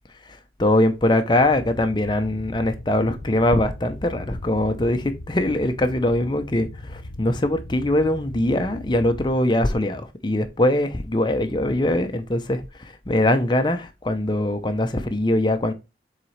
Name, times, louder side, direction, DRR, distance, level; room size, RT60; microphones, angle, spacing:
voice 1, 0.3-15.7, left 1 dB, 25° left, 0.6 m, -22 dB
sound 1, 1.3-9.3, left 1 dB, 60° left, 0.7 m, -39 dB
7.4 x 4.0 x 3.2 m
head